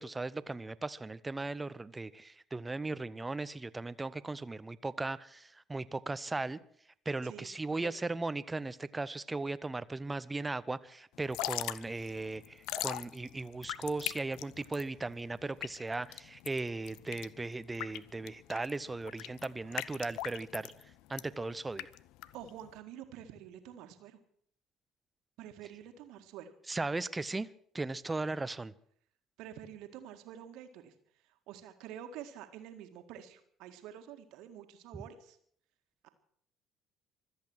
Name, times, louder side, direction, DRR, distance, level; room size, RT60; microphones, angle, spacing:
voice 1, 0.0-6.6 7.1-20.7 21.1-21.9 26.7-27.5 27.7-28.7, right 3 dB, 20° right, 17 dB, 0.8 m, -37 dB
voice 2, 7.2-7.9 19.6-19.8 22.3-24.2 25.4-26.5 29.4-30.9 31.2-35.4 36.0-36.1, right 10 dB, 60° right, 8 dB, 1.8 m, -48 dB
Drip / Trickle dribble, 11.2-22.8, left 16 dB, 65° left, 0.5 m, -41 dB
25.0 x 8.5 x 6.3 m, 0.62 s
figure-of-eight pair, 55°, 0 cm